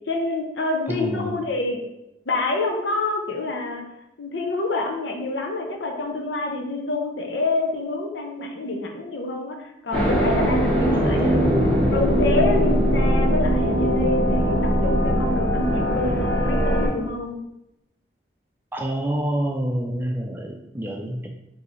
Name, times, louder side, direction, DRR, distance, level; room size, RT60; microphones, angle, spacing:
voice 1, 0.1-1.8 2.3-3.8 4.2-11.5 11.9-17.4, left 2 dB, 90° left, 2 dB, 0.7 m, -27 dB
voice 2, 0.9-1.4 10.9-12.0 18.7-21.3, right 1 dB, 10° right, 2 dB, 0.4 m, -27 dB
sound 1, 9.9-16.9, equal, 5° left, 1.0 m, -21 dB
4.8 x 2.8 x 3.1 m, 0.87 s
head